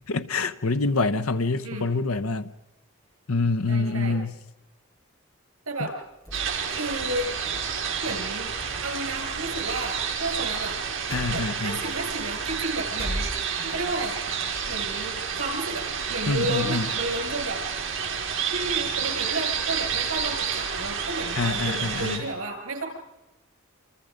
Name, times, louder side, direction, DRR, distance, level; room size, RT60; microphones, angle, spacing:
voice 1, 0.1-2.5 3.3-4.4 5.8-5.9 11.1-11.8 16.3-16.9 21.4-22.3, left 3 dB, 90° left, 1.0 m, -26 dB
voice 2, 3.7-4.2 5.7-5.9 6.7-7.3 8.0-8.5 8.8-10.8 11.3-14.2 14.7-17.6 18.5-22.8, right 2 dB, 80° right, 6.7 m, -32 dB
sound 1, 6.2-13.9 14.3-15.1, equal, 15° left, 6.6 m, -41 dB
sound 2, 6.3-22.2, right 7 dB, 65° right, 4.6 m, -30 dB
28.5 x 28.0 x 5.2 m
head